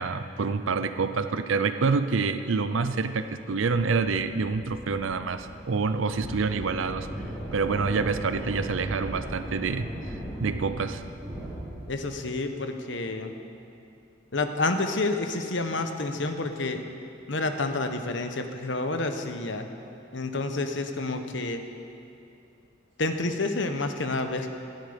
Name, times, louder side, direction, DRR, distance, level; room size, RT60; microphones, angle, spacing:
voice 1, 0.0-7.1 7.5-10.1 10.4-11.0, right 4 dB, 85° right, 11 dB, 0.6 m, -27 dB
sound 1, 3.7-12.1, equal, 5° right, 4.1 m, -38 dB
voice 2, 11.9-13.3 14.3-16.8 17.3-19.7 20.1-21.6 23.0-24.5, left 2 dB, 70° left, 6 dB, 1.1 m, -29 dB
18.0 x 12.5 x 5.2 m, 2.6 s
head